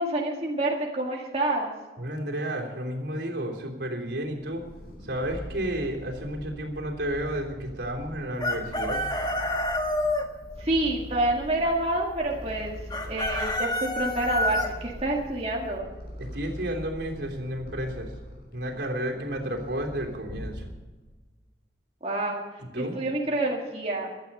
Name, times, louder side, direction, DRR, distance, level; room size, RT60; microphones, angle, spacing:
voice 1, 0.0-1.7 10.6-12.8 13.1-15.9 22.0-22.4 22.7-24.1, right 1 dB, 35° right, -1 dB, 2.0 m, -28 dB
voice 2, 2.0-4.6 5.0-9.0 16.2-18.1 18.5-20.7 22.6-23.0, right 1 dB, 85° right, 1 dB, 3.3 m, -32 dB
Purr, 4.2-21.0, equal, 60° left, 6.2 m, -42 dB
Chicken rooster, 8.4-10.2 12.9-14.7, left 1 dB, 25° left, 1.5 m, -27 dB
16.0 x 12.0 x 5.5 m, 1.3 s
head